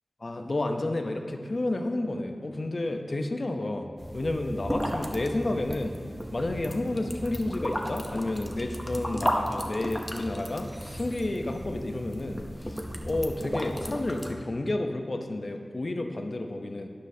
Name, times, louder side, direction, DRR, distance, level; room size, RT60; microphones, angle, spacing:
voice 1, 0.2-6.0 6.3-16.9, left 2 dB, 50° left, 5 dB, 0.7 m, -31 dB
sound 1, 4.0-14.3, equal, 5° left, 0.8 m, -34 dB
11.5 x 9.7 x 2.8 m, 2.1 s
wide cardioid pair, 90°, 0 cm